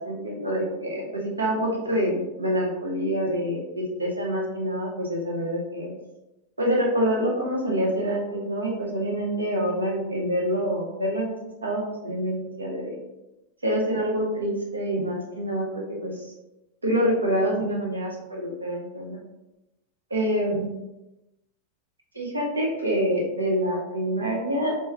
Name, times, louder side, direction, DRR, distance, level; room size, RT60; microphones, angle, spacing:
voice 1, 0.0-5.9 6.6-11.4 11.6-13.0 13.6-16.3 16.8-19.2 20.1-20.7 22.1-24.7, equal, 80° right, -2 dB, 1.1 m, -26 dB
4.4 x 3.0 x 3.5 m, 0.96 s
figure-of-eight pair, 90°, 0 cm